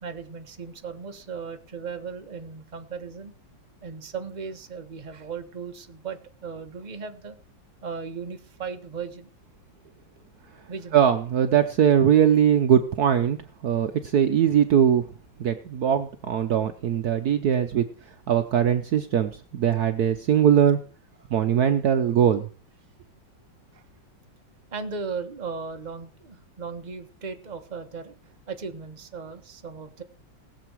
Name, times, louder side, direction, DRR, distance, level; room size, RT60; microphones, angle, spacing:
voice 1, 0.0-3.3 3.8-7.4 7.8-9.3 10.7-11.0 23.7-23.8 24.7-30.0, right 5 dB, 25° right, 6 dB, 1.3 m, -37 dB
voice 2, 10.9-13.4 13.6-15.0 15.4-17.9 18.3-20.8 21.3-22.5, right 9 dB, 60° right, 8 dB, 1.2 m, -21 dB
20.0 x 7.8 x 4.6 m, 0.41 s
omnidirectional pair, 2.0 m